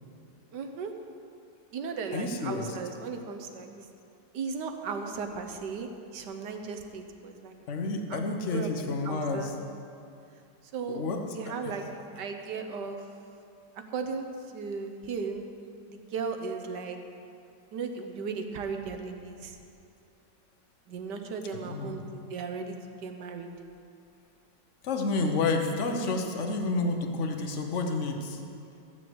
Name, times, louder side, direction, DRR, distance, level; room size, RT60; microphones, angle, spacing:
voice 1, 0.5-0.9 1.7-3.8 4.3-7.5 8.1-8.2 8.5-8.7 9.0-9.5 10.7-11.0 11.3-13.0 13.9-14.3 14.5-15.4 15.9-17.0 17.7-19.5 20.9-22.8 23.0-23.5, right 5 dB, 70° right, 5 dB, 1.6 m, -36 dB
voice 2, 2.1-2.7 7.7-9.5 10.9-11.7 21.5-22.1 24.8-28.4, left 3 dB, 45° left, 4 dB, 1.3 m, -30 dB
14.5 x 7.0 x 7.8 m, 2.5 s
omnidirectional pair, 2.0 m